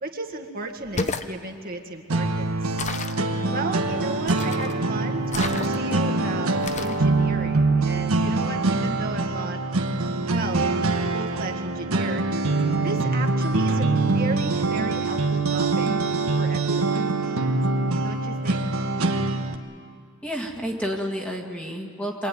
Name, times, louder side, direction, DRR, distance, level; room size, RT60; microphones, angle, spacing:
voice 1, 0.0-2.8 3.5-9.6 10.3-10.7 11.0-12.2 12.8-15.9 16.4-17.1 18.0-18.6, right 3 dB, 40° right, 3 dB, 1.8 m, -34 dB
sound 1, 0.8-1.3 2.8-3.2 4.3-4.8 5.3-6.0 6.6-7.0, left 3 dB, 30° left, 0.9 m, -31 dB
sound 2, 2.1-19.5, right 3 dB, 80° right, 1.5 m, -24 dB
voice 2, 20.2-22.3, equal, 5° left, 0 dB, 1.9 m, -30 dB
25.5 x 21.0 x 9.5 m, 2.2 s
head